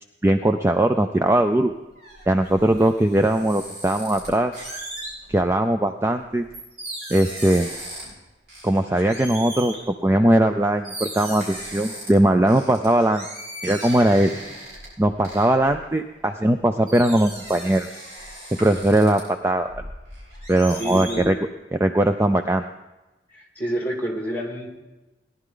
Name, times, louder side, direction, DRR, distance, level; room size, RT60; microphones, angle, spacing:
voice 1, 0.2-1.7 2.3-4.5 5.3-6.5 7.1-7.7 8.6-9.7 10.0-13.3 13.6-14.3 15.0-17.9 18.2-18.3 18.6-19.8 20.5-21.4 21.7-22.6, right 1 dB, 15° right, 7 dB, 0.4 m, -20 dB
sound 1, 1.6-5.5 6.1-8.2 8.5-9.9 10.5-10.6 10.8-12.1 12.5-16.6 16.9-19.2 19.6-21.3, right 1 dB, 55° right, 5.6 m, -37 dB
voice 2, 20.8-21.3 23.3-24.7, equal, 10° left, 1 dB, 2.2 m, -28 dB
18.0 x 11.0 x 3.8 m, 1.1 s
head